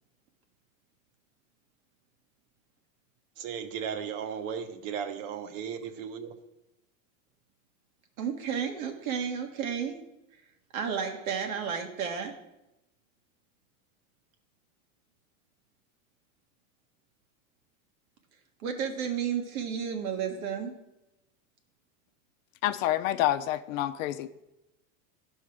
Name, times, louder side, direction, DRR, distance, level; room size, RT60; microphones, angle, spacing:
voice 1, 3.4-6.4, right 7 dB, 65° right, 8 dB, 1.2 m, -36 dB
voice 2, 8.2-10.0 10.7-12.4 18.6-20.8, right 7 dB, 80° right, 4 dB, 1.7 m, -32 dB
voice 3, 22.6-24.3, left 13 dB, 70° left, 11 dB, 0.7 m, -28 dB
11.5 x 5.4 x 5.0 m, 0.93 s
supercardioid pair, 140°, 41 cm